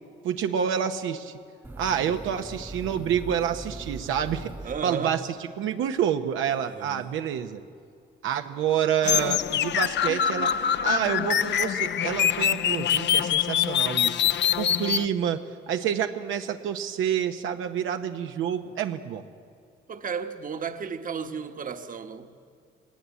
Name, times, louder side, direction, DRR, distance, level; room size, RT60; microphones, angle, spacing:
voice 1, 0.2-1.3 1.8-4.5 4.8-5.2 5.6-7.6 8.2-10.5 10.8-14.2 14.6-19.2, right 9 dB, 85° right, 0.9 m, -28 dB
sound 1, 1.6-5.4, right 2 dB, 10° right, 0.5 m, -41 dB
voice 2, 4.6-5.2 6.6-7.2 19.9-22.4, right 6 dB, 45° right, 1.2 m, -34 dB
sound 2, 9.0-15.0, left 9 dB, 65° left, 0.7 m, -24 dB
20.5 x 19.0 x 8.3 m
cardioid pair, 90°, 20 cm